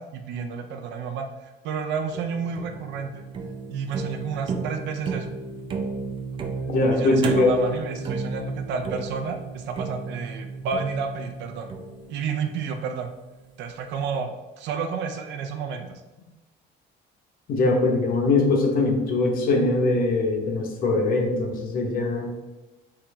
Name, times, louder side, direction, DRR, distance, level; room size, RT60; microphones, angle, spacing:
voice 1, 0.0-3.1 3.7-5.3 6.9-11.7 12.1-13.1 13.6-16.0, right 5 dB, 75° right, 5 dB, 0.6 m, -31 dB
sound 1, 2.1-13.3, right 4 dB, 30° right, 0.4 m, -33 dB
voice 2, 6.7-7.6 17.5-22.3, left 2 dB, 50° left, 2 dB, 0.9 m, -22 dB
3.7 x 3.0 x 4.5 m, 1.1 s
cardioid pair, 180°, 19 cm